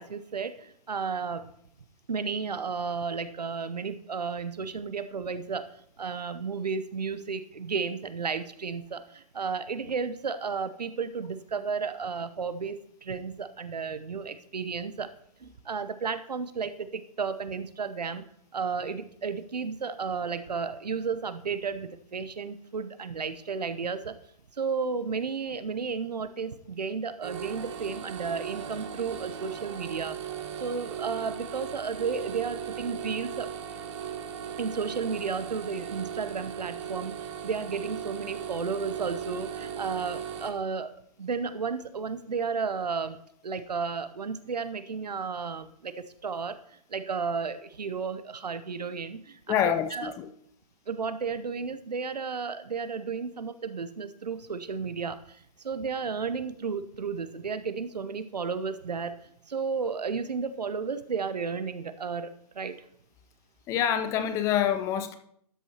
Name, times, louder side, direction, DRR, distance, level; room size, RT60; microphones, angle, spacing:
voice 1, 0.0-1.5 2.1-5.7 6.0-15.1 15.4-18.2 18.5-24.2 24.5-30.3 30.6-33.5 34.6-43.2 43.4-49.6 49.9-50.1 50.9-62.7, right 5 dB, 80° right, 0.9 m, -33 dB
sound 1, 27.2-40.5, right 8 dB, 45° right, 1.3 m, -38 dB
voice 2, 49.5-50.3 63.7-65.2, left 9 dB, 15° left, 0.4 m, -26 dB
12.5 x 8.2 x 2.9 m
figure-of-eight pair, 130°, 21 cm